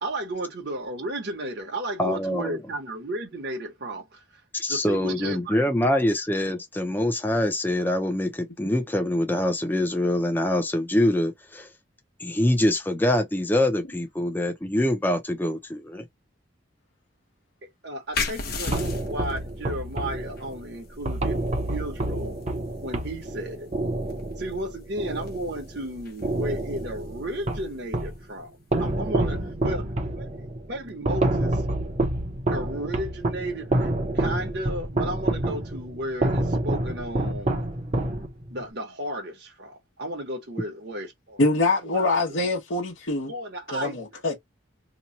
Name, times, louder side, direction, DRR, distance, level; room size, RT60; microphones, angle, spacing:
voice 1, 0.0-4.4 4.7-6.3 17.8-21.4 21.7-22.4 22.8-24.0 24.4-28.5 28.8-31.6 32.5-37.6 38.5-41.5 41.8-42.4 43.3-44.4, right 1 dB, 55° right, 1.0 m, -34 dB
voice 2, 2.0-2.6 4.5-11.7 12.2-16.0, left 1 dB, 10° left, 0.6 m, -24 dB
sound 1, 18.1-29.4, left 4 dB, 50° left, 0.9 m, -39 dB
sound 2, 18.7-25.8 26.2-28.2 28.7-38.6, right 1 dB, 35° right, 0.7 m, -28 dB
voice 3, 41.4-43.3 43.7-44.4, left 2 dB, 75° left, 1.0 m, -24 dB
3.0 x 2.2 x 4.0 m
head